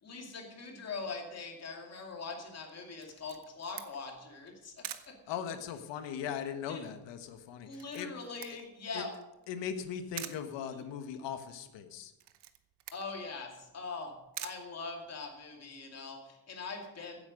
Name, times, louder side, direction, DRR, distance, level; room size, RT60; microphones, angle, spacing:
voice 1, 0.0-5.1 6.7-6.8 7.7-9.1 12.9-14.1 14.4-17.3, left 4 dB, 35° left, 1 dB, 2.5 m, -42 dB
Camera, 3.0-15.5, right 12 dB, 65° right, 1.0 m, -49 dB
voice 2, 5.3-8.6 8.9-9.1 9.5-12.1, left 8 dB, 80° left, 8 dB, 1.5 m, -39 dB
15.5 x 8.7 x 5.3 m, 0.95 s
cardioid pair, 165°, 43 cm